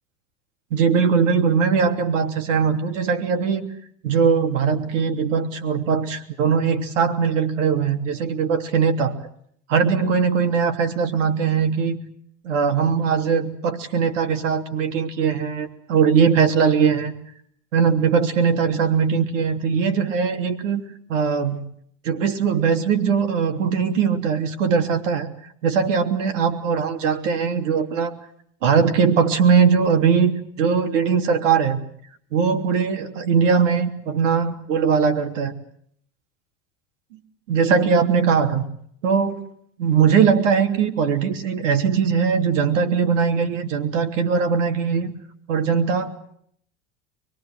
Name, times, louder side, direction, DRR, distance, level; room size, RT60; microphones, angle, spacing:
voice 1, 0.7-3.7 4.0-9.2 9.7-12.0 12.4-17.1 17.7-20.8 21.1-21.6 22.0-25.3 25.6-28.1 28.6-30.3 30.6-31.8 32.3-35.5 37.5-38.6 39.0-39.5 39.8-45.1 45.5-46.1, right 6 dB, 85° right, 6 dB, 3.2 m, -20 dB
25.5 x 23.0 x 7.8 m, 0.66 s
hypercardioid pair, 95°, 37 cm